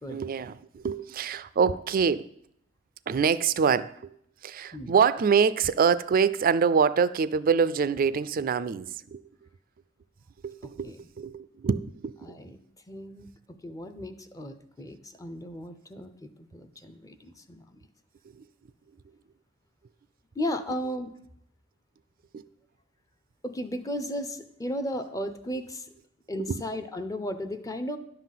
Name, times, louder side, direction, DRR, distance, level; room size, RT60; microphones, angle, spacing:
voice 1, 0.1-2.3 3.1-4.1 4.4-9.2 10.4-10.9 11.2-12.1 18.4-18.5 22.3-22.4 26.5-26.6, right 6 dB, 45° right, 0.4 m, -25 dB
voice 2, 12.2-12.6 12.9-17.8 20.4-21.1 23.4-25.9 26.3-28.0, equal, 15° left, 0.6 m, -35 dB
10.5 x 4.0 x 7.4 m
head